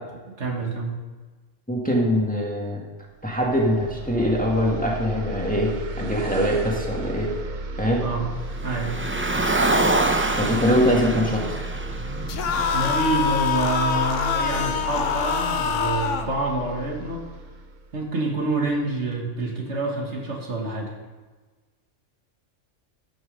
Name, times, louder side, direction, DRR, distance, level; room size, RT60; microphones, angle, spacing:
voice 1, 0.4-1.0 8.0-8.3 8.6-9.0 12.7-17.3 17.9-20.9, right 2 dB, 65° right, 0 dB, 1.9 m, -27 dB
voice 2, 1.7-2.8 3.2-7.3 7.8-8.0 10.4-11.6, equal, 5° left, -3 dB, 1.9 m, -23 dB
sound 1, 3.2-18.6, right 2 dB, 45° right, 0.7 m, -34 dB
Car, 8.6-13.0, right 2 dB, 15° right, 0.4 m, -25 dB
sound 2, 12.3-16.3, left 6 dB, 80° left, 1.0 m, -25 dB
13.0 x 6.3 x 5.4 m, 1.3 s
omnidirectional pair, 1.3 m